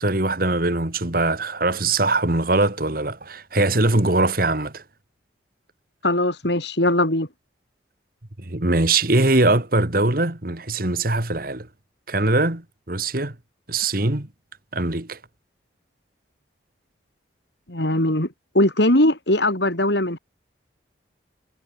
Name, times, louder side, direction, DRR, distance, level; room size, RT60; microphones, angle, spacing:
voice 1, 0.0-4.8 8.4-11.7 12.1-13.4 13.7-14.3 14.7-15.2, right 2 dB, 50° right, 2.1 m, -21 dB
voice 2, 6.0-7.3 17.7-18.3 18.5-20.2, left 1 dB, 65° left, 5.1 m, -20 dB
head